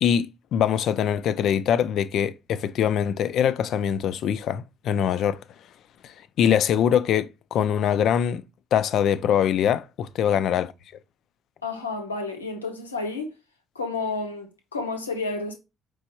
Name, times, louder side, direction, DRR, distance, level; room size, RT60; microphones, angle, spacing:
voice 1, 0.0-5.4 6.0-8.4 8.7-10.7, left 9 dB, 60° left, 0.3 m, -23 dB
voice 2, 11.6-13.3 13.7-15.5, left 3 dB, 85° left, 0.7 m, -31 dB
5.2 x 3.2 x 2.9 m
figure-of-eight pair, 45°, 0 cm